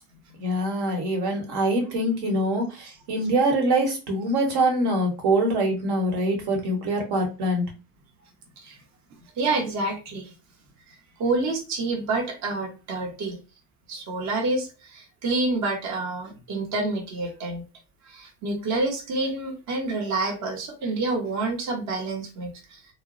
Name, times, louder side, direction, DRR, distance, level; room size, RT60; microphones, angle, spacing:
voice 1, 0.4-7.7, right 1 dB, 60° right, 2 dB, 1.2 m, -24 dB
voice 2, 9.4-10.3 10.9-11.0 11.2-13.4 13.9-17.6 18.0-22.8, right 2 dB, 40° right, 1 dB, 0.9 m, -28 dB
2.1 x 2.0 x 3.7 m, 0.31 s
supercardioid pair, 125°, 44 cm